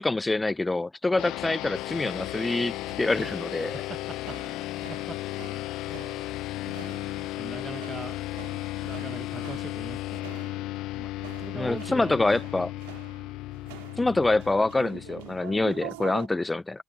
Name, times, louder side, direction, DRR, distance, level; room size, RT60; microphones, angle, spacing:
voice 1, 0.0-3.8 11.5-12.7 14.0-16.8, left 2 dB, 20° left, 0.4 m, -26 dB
sound 1, 1.2-16.0, left 18 dB, 65° left, 0.6 m, -35 dB
sound 2, 1.7-10.2, left 7 dB, 45° left, 2.8 m, -56 dB
sound 3, 2.0-16.3, right 26 dB, 75° right, 3.3 m, -46 dB
voice 2, 3.6-5.2 6.7-8.2 8.7-10.3 10.9-12.2, right 4 dB, 30° right, 1.2 m, -42 dB
figure-of-eight pair, 50°, 0 cm